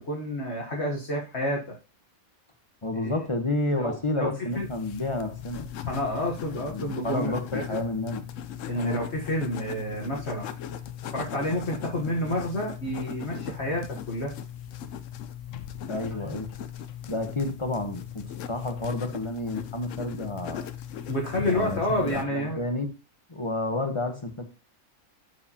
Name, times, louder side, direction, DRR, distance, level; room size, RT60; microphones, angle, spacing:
voice 1, 0.0-1.7 3.0-3.1 3.8-4.3 4.5-4.7 5.9-7.8 8.7-10.5 11.1-14.3 21.1-22.6, left 1 dB, 50° left, -1 dB, 1.5 m, -29 dB
voice 2, 2.8-5.6 6.6-8.2 8.7-9.0 15.9-16.5 17.1-20.7 21.5-22.9 23.3-24.4, left 2 dB, 25° left, 5 dB, 0.9 m, -30 dB
sound 1, 4.5-22.3, left 9 dB, 70° left, 0.9 m, -38 dB
12.5 x 4.8 x 2.8 m, 0.32 s
omnidirectional pair, 1.5 m